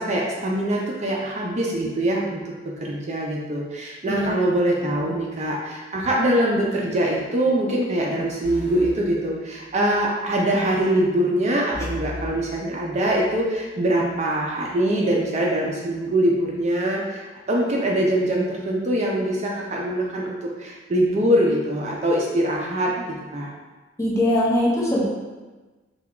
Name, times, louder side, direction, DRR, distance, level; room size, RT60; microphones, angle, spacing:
voice 1, 0.0-23.0 23.3-23.5, right 1 dB, 35° right, -2 dB, 0.4 m, -23 dB
sound 1, 8.4-10.0 11.7-13.5, left 1 dB, 60° right, 0.9 m, -37 dB
voice 2, 24.0-25.1, left 1 dB, 15° left, -6 dB, 0.7 m, -21 dB
3.4 x 2.2 x 3.6 m, 1.3 s
head